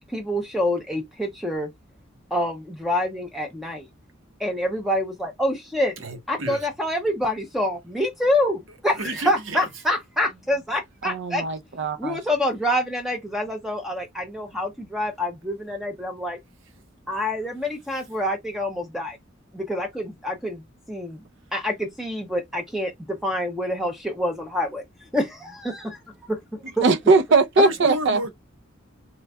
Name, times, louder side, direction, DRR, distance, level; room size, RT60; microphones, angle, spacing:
voice 1, 0.1-1.7 2.3-3.9 4.4-6.0 6.3-11.4 12.0-16.4 17.1-19.2 19.5-20.6 20.9-21.2 21.5-24.8 25.1-26.0 26.3-26.4 26.8-26.9, left 1 dB, ahead, 0.5 m, -26 dB
voice 2, 6.0-6.7 8.9-9.7 27.6-28.3, right 1 dB, 85° right, 1.0 m, -31 dB
voice 3, 11.0-12.2 26.8-28.2, right 3 dB, 65° right, 0.5 m, -20 dB
3.8 x 3.1 x 2.2 m
head